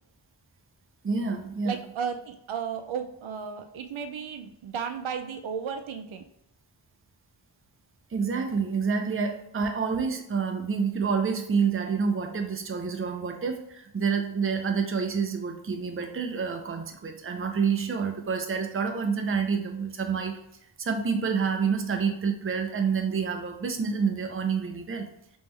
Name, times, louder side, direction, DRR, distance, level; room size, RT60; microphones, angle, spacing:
voice 1, 1.0-1.8 8.1-20.4 20.8-25.1, right 5 dB, 30° right, 4 dB, 0.5 m, -28 dB
voice 2, 1.6-6.2, right 7 dB, 85° right, 6 dB, 0.5 m, -34 dB
3.5 x 3.1 x 3.1 m, 0.76 s
wide cardioid pair, 80°, 46 cm